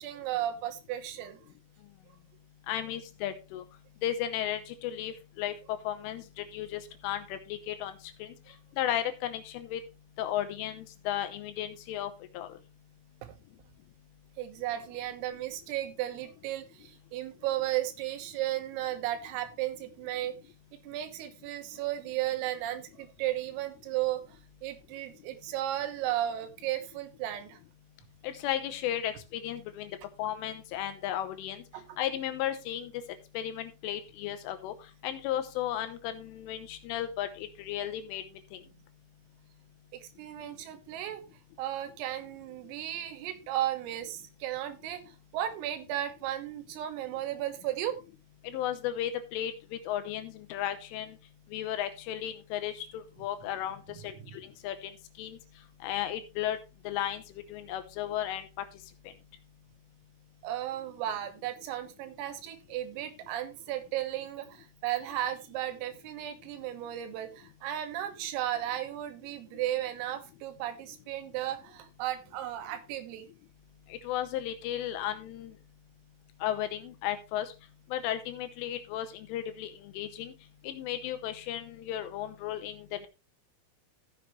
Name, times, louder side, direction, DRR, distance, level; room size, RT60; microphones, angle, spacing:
voice 1, 0.0-1.4 14.4-20.4 20.8-27.6 31.7-32.0 39.9-41.2 41.6-48.0 53.9-54.4 60.4-73.3, right 13 dB, 85° right, 8 dB, 3.8 m, -35 dB
voice 2, 2.7-3.6 4.0-7.9 8.2-8.4 8.8-9.8 10.2-12.6 28.2-29.9 30.2-31.6 32.0-32.9 33.3-34.7 35.0-38.6 48.4-51.2 51.5-54.9 55.2-55.4 55.8-56.6 56.8-57.2 57.5-58.5 74.0-75.5 76.4-77.5 77.9-80.3 80.6-83.1, left 11 dB, 80° left, 9 dB, 3.3 m, -34 dB
14.0 x 7.4 x 3.1 m, 0.27 s
omnidirectional pair, 6.0 m